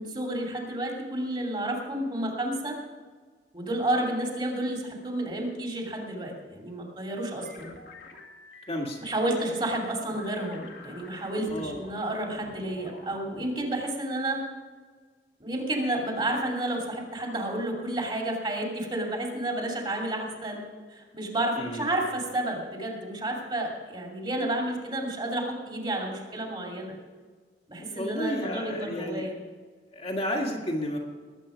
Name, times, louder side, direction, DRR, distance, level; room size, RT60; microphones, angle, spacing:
voice 1, 0.0-2.8 3.5-7.7 9.0-14.4 15.4-20.6 20.9-26.9 27.7-29.3, right 1 dB, 25° right, 0 dB, 2.7 m, -31 dB
sound 1, 7.4-13.5, left 2 dB, 70° left, 2.1 m, -48 dB
voice 2, 8.7-9.0 11.5-11.8 21.6-22.0 27.8-29.3 29.9-31.0, equal, 35° left, -1 dB, 1.8 m, -32 dB
20.0 x 8.3 x 5.1 m, 1.5 s
head